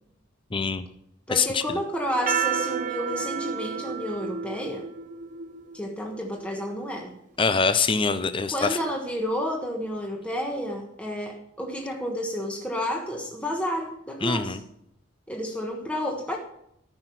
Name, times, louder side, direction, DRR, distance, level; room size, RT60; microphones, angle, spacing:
voice 1, 0.5-0.8 1.3-1.6 7.4-8.8 14.2-14.6, left 5 dB, 25° left, 11 dB, 0.7 m, -24 dB
voice 2, 1.3-4.9 5.7-7.1 8.5-14.6 15.3-16.4, equal, 5° left, 0 dB, 1.3 m, -31 dB
sound 1, 2.1-6.9, right 7 dB, 40° right, 0.6 m, -31 dB
14.0 x 6.2 x 9.2 m, 0.75 s
head